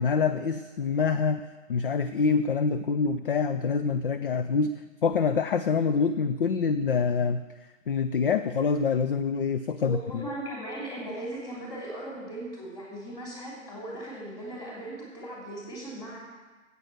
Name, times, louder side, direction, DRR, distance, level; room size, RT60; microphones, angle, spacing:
voice 1, 0.0-1.4 1.7-7.4 7.9-10.3, left 5 dB, 45° left, 10 dB, 0.5 m, -26 dB
voice 2, 9.8-16.2, right 1 dB, 10° left, -5 dB, 3.1 m, -38 dB
9.5 x 8.1 x 7.7 m, 1.3 s
figure-of-eight pair, 135°, 40 cm